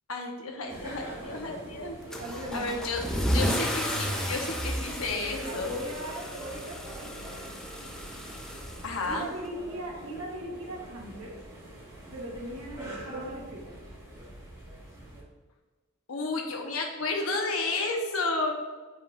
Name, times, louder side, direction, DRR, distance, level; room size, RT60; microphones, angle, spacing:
voice 1, 0.1-2.0 2.5-5.7 8.8-9.3 16.1-18.5, left 3 dB, 80° left, 1 dB, 1.0 m, -32 dB
sound 1, 0.7-15.2, right 1 dB, 15° right, 1.6 m, -44 dB
Car / Engine starting / Accelerating revving vroom, 2.1-9.5, equal, 5° left, 0.5 m, -33 dB
voice 2, 2.2-2.7 5.5-7.4 9.0-11.4 12.1-13.7, equal, 75° right, -1 dB, 1.2 m, -39 dB
7.1 x 5.2 x 2.6 m, 1.3 s
head